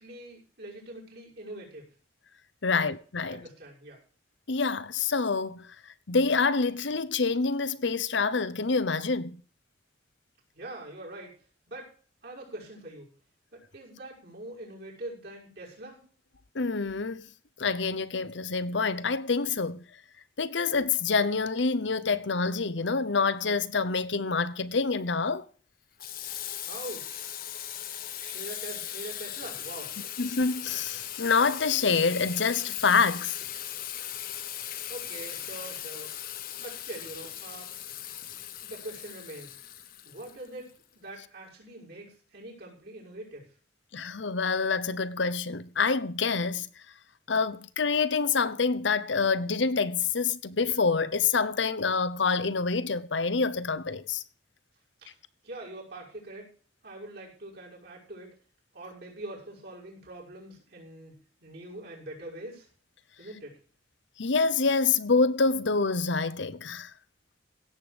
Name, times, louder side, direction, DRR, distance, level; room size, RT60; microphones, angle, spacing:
voice 1, 0.0-1.9 2.7-2.9 3.3-4.0 10.5-11.3 11.7-11.9 12.2-13.1 13.5-16.0 26.7-27.3 28.2-30.0 34.9-36.1 36.6-37.7 38.6-39.6 40.0-43.5 55.0-55.1 55.4-56.5 56.8-58.3 58.7-62.7 63.2-63.6, right 1 dB, 55° right, 6.1 m, -43 dB
voice 2, 2.6-3.4 4.5-5.7 6.1-9.4 16.5-17.2 17.6-19.8 20.4-25.4 30.2-33.4 43.9-46.7 47.3-54.2 64.2-66.9, left 4 dB, 70° left, 0.8 m, -27 dB
Water tap faucet / Sink (filling or washing), 26.0-40.8, left 11 dB, 50° left, 1.2 m, -38 dB
16.5 x 8.0 x 5.1 m
head